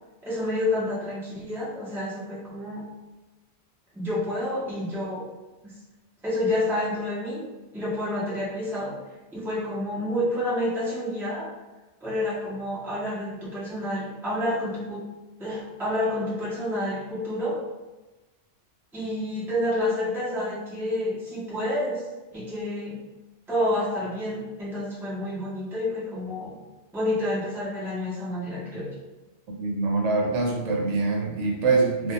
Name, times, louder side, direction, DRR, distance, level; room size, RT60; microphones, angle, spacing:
voice 1, 0.2-2.8 3.9-5.2 6.2-7.4 7.7-8.9 9.3-11.5 12.0-15.0 15.4-17.6 18.9-22.0 22.3-23.0 23.5-26.6 26.9-28.9, left 1 dB, 5° right, -9 dB, 0.5 m, -29 dB
voice 2, 29.5-32.1, right 3 dB, 85° right, 0 dB, 0.9 m, -24 dB
2.2 x 2.2 x 2.7 m, 1.1 s
omnidirectional pair, 1.2 m